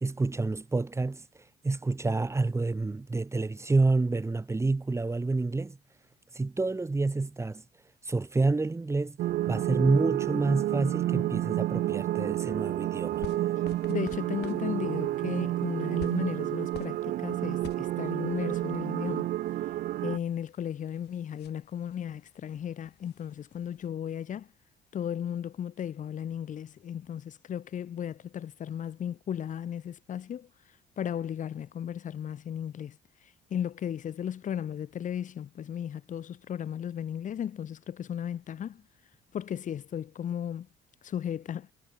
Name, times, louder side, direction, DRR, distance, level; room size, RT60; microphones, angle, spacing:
voice 1, 0.0-1.2 1.6-5.8 6.3-7.6 8.0-9.2 9.5-13.3, right 3 dB, 15° right, 2.3 m, -28 dB
sound 1, 9.2-20.2, right 14 dB, 60° right, 0.7 m, -30 dB
sound 2, 13.0-23.9, left 16 dB, 80° left, 4.2 m, -51 dB
voice 2, 13.9-19.3 20.0-24.5 24.9-30.5 31.0-33.0 33.5-38.8 39.3-40.7 41.0-41.7, left 9 dB, 50° left, 2.7 m, -35 dB
cardioid pair, 110°, 17 cm